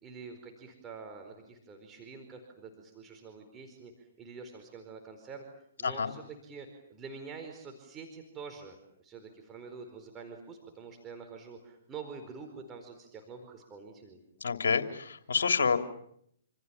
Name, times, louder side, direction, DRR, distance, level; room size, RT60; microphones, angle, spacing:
voice 1, 0.0-5.4 5.8-14.2, right 5 dB, 20° right, 4 dB, 4.7 m, -46 dB
voice 2, 5.8-6.1 14.4-15.8, left 5 dB, 70° left, 8 dB, 3.2 m, -28 dB
28.0 x 28.0 x 7.2 m, 0.70 s
figure-of-eight pair, 125°, 0 cm